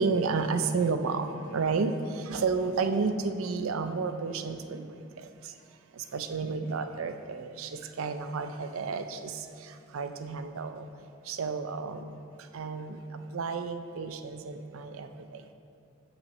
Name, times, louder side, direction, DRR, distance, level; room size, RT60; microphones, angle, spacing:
voice 1, 0.0-1.9 2.3-4.8 6.1-7.7 8.0-9.3 9.9-10.9 11.3-12.1 12.5-13.0 13.3-15.1, right 4 dB, 70° right, 8 dB, 0.4 m, -31 dB
6.6 x 6.0 x 4.1 m, 2.5 s
head